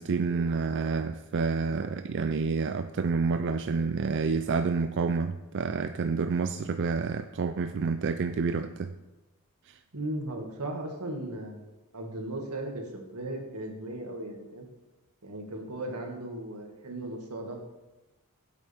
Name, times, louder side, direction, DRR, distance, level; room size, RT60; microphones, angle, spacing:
voice 1, 0.0-8.9 9.7-9.8, right 4 dB, 55° right, 8 dB, 0.4 m, -29 dB
voice 2, 9.9-11.7 11.9-14.6 15.2-17.7, right 1 dB, 90° right, 1 dB, 2.2 m, -37 dB
16.5 x 8.2 x 3.6 m, 1.1 s
head